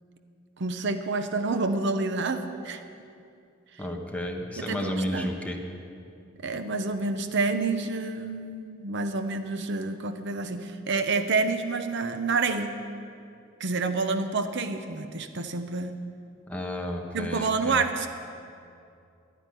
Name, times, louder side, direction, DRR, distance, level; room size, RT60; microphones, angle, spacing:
voice 1, 0.6-2.8 4.6-5.3 6.4-12.8 13.6-16.0 17.1-18.1, right 3 dB, 60° right, 8 dB, 0.8 m, -28 dB
voice 2, 3.8-5.6 16.5-17.8, left 1 dB, 5° left, 1 dB, 1.3 m, -32 dB
12.5 x 10.0 x 9.8 m, 2.5 s
head